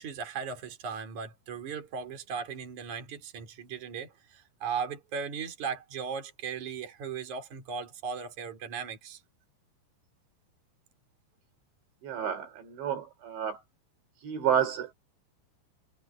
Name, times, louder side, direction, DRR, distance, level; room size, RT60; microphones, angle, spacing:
voice 1, 0.0-9.2, right 6 dB, 40° right, 5.1 m, -37 dB
voice 2, 12.0-13.6 14.2-14.9, right 8 dB, 65° right, 5.7 m, -30 dB
omnidirectional pair, 5.6 m